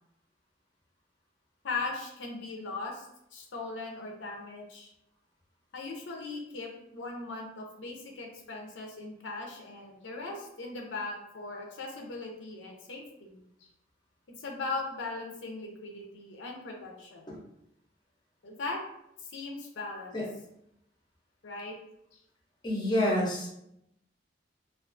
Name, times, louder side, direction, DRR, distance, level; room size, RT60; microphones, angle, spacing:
voice 1, 1.6-3.1 3.3-4.9 5.7-13.7 14.4-17.2 18.4-18.8 19.2-20.2 21.4-21.8 22.1-22.2, left 3 dB, 80° left, 0 dB, 0.5 m, -39 dB
voice 2, 22.6-23.5, left 1 dB, 25° left, -2 dB, 0.6 m, -28 dB
2.4 x 2.3 x 2.5 m, 0.79 s
head